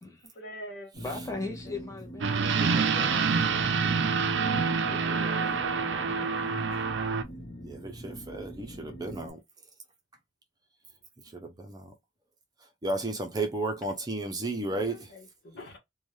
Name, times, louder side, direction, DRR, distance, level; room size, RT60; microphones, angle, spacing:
voice 1, 0.3-0.9 2.9-3.7 4.6-4.7 14.9-15.8, equal, 60° left, 1.0 m, -45 dB
sound 1, 0.9-9.3, equal, 35° left, 1.3 m, -44 dB
voice 2, 1.0-4.0 4.8-6.4, left 3 dB, 15° left, 0.9 m, -41 dB
sound 2, 2.2-7.2, right 5 dB, 70° right, 0.5 m, -27 dB
voice 3, 7.6-9.4 11.3-11.9 12.8-15.1, right 2 dB, 20° right, 0.6 m, -33 dB
2.5 x 2.3 x 3.1 m
head